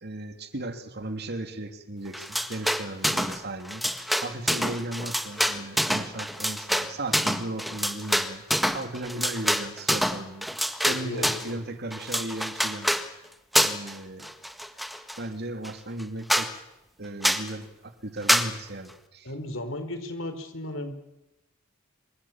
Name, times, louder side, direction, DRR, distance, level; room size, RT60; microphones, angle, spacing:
voice 1, 0.0-8.4 8.7-10.5 10.8-12.9 13.6-14.3 15.2-16.5 17.0-19.3, right 1 dB, 50° right, 8 dB, 2.7 m, -36 dB
sound 1, 2.1-3.4 3.7-11.5 11.9-13.1 13.5-13.9 14.2-15.2 15.6-15.7 16.0-16.1 16.3-16.5 17.2-17.5 18.3-18.5, equal, ahead, 1.6 m, -26 dB
voice 2, 10.9-11.6 19.2-20.9, left 1 dB, 70° left, 9 dB, 4.6 m, -35 dB
27.0 x 25.0 x 7.4 m, 0.92 s
head